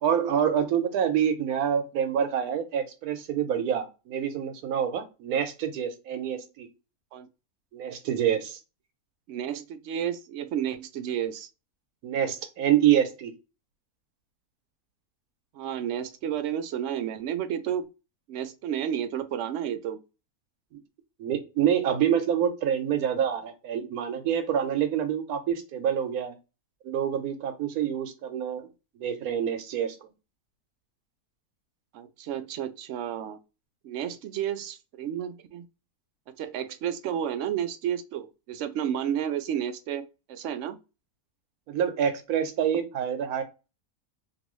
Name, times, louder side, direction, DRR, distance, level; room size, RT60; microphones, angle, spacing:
voice 1, 0.0-6.7 7.7-8.6 12.0-13.3 21.2-26.3 26.8-28.7 29.0-30.1 41.7-43.4, right 9 dB, 90° right, 1.2 m, -26 dB
voice 2, 9.3-11.5 15.5-17.9 18.3-20.0 31.9-33.4 33.8-35.7 36.4-40.8, right 9 dB, 65° right, 0.8 m, -31 dB
3.0 x 2.6 x 3.0 m
omnidirectional pair, 1.5 m